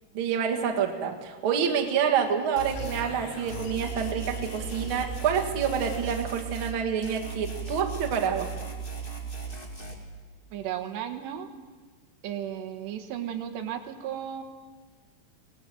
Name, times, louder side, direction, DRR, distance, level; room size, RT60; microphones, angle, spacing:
voice 1, 0.1-8.5, right 7 dB, 55° right, 3 dB, 1.4 m, -27 dB
sound 1, 2.6-3.1 3.5-6.8 7.0-9.9, right 6 dB, 45° left, 0.6 m, -37 dB
sound 2, 2.7-6.5, left 4 dB, 85° left, 5.5 m, -44 dB
voice 2, 10.5-11.5 12.2-14.4, right 10 dB, 70° right, 6 dB, 3.3 m, -34 dB
24.0 x 18.0 x 7.8 m, 1.4 s
omnidirectional pair, 5.4 m